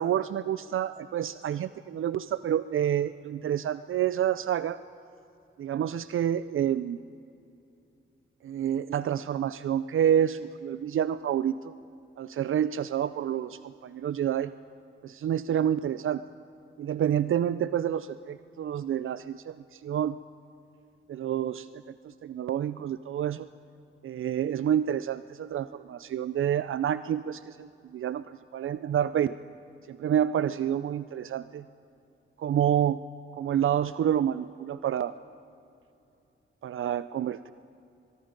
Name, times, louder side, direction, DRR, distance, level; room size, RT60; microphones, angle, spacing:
voice 1, 0.0-4.8 5.6-7.0 8.4-11.7 12.2-14.5 15.0-16.2 16.8-20.2 21.1-21.7 22.0-23.5 24.0-29.4 29.9-31.6 32.4-33.0 33.3-35.1 36.6-37.5, right 10 dB, 75° right, 14 dB, 0.5 m, -28 dB
23.0 x 23.0 x 5.2 m, 2.7 s
wide cardioid pair, 130°, 21 cm